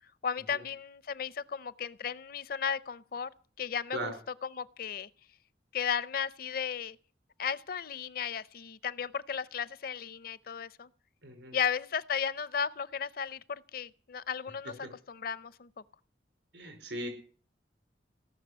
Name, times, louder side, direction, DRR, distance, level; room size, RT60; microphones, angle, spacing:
voice 1, 0.2-3.3 3.6-4.1 4.4-5.1 5.7-7.0 7.4-10.9 11.5-14.7 15.1-15.7, left 7 dB, 55° left, 18 dB, 0.6 m, -35 dB
voice 2, 11.2-11.6 16.5-17.1, right 1 dB, 80° right, 5 dB, 4.9 m, -38 dB
17.5 x 6.6 x 10.0 m, 0.43 s
head